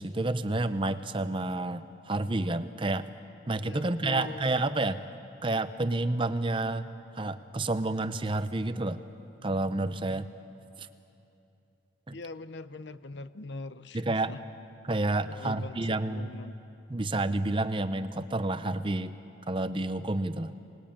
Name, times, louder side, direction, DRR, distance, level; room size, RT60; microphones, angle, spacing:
voice 1, 0.0-3.1 3.5-5.0 5.4-6.9 7.2-9.0 9.4-10.3 10.8-10.9 12.1-12.2 13.9-14.3 14.9-16.3 16.9-19.1 19.5-20.5, right 2 dB, 25° right, 12 dB, 0.7 m, -29 dB
voice 2, 3.6-4.7 12.1-14.4 15.3-16.6, left 3 dB, 60° left, 13 dB, 0.7 m, -42 dB
26.5 x 20.5 x 8.8 m, 2.8 s
head